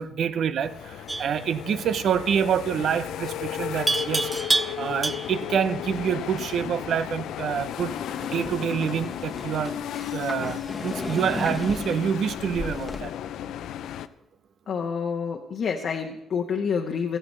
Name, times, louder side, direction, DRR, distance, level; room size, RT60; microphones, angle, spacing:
voice 1, 0.0-4.3 4.8-7.9 8.3-9.8 10.1-13.1, right 8 dB, 65° right, 0.6 m, -27 dB
sound 1, 0.6-14.1, left 11 dB, 80° left, 0.5 m, -34 dB
Livestock farm animals working animals, 1.1-1.4 3.9-5.5, right 2 dB, 20° right, 0.3 m, -27 dB
sound 2, 7.7-13.0, left 2 dB, 20° left, 1.2 m, -36 dB
voice 2, 14.7-17.2, left 6 dB, 60° left, 1.1 m, -28 dB
15.5 x 13.0 x 3.2 m
cardioid pair, 90°, 0 cm